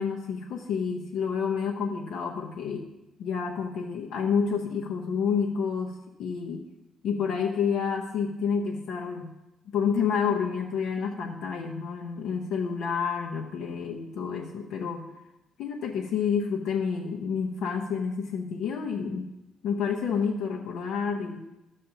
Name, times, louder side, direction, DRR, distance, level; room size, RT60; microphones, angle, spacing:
voice 1, 0.0-2.9 3.2-6.6 7.0-9.3 9.7-15.1 15.6-19.3 19.6-21.4, left 6 dB, 80° left, 1 dB, 0.9 m, -29 dB
12.0 x 7.4 x 2.8 m, 0.92 s
cardioid pair, 140°, 0 cm